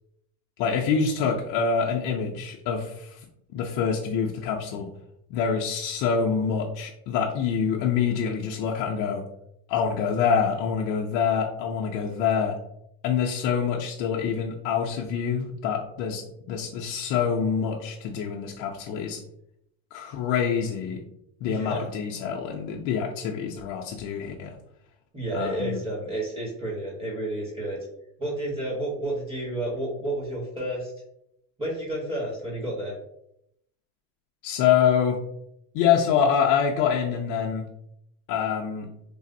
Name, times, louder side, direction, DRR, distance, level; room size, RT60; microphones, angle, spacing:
voice 1, 0.6-3.2 3.5-4.9 5.3-9.2 9.7-12.6 13.0-19.2 19.9-21.0 21.4-24.6 25.3-25.8 34.4-35.2 35.7-37.7 38.3-38.9, left 7 dB, 60° left, -1 dB, 0.5 m, -26 dB
voice 2, 21.4-21.9 25.1-27.9 28.2-30.9 31.6-32.9, right 1 dB, 15° right, -4 dB, 1.0 m, -31 dB
3.3 x 2.0 x 2.6 m, 0.77 s
supercardioid pair, 125°, 40 cm